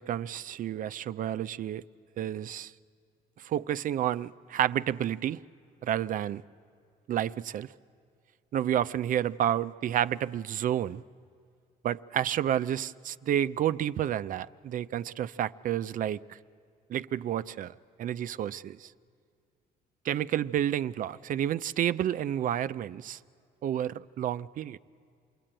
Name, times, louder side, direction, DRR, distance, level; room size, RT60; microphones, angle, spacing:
voice 1, 0.0-1.8 2.2-2.7 3.4-5.4 5.8-6.4 7.1-7.7 8.5-11.0 11.8-16.4 16.9-18.9 20.0-23.2 23.6-24.8, right 11 dB, 55° right, 0.6 m, -30 dB
27.5 x 21.0 x 8.9 m
cardioid pair, 110°, 17 cm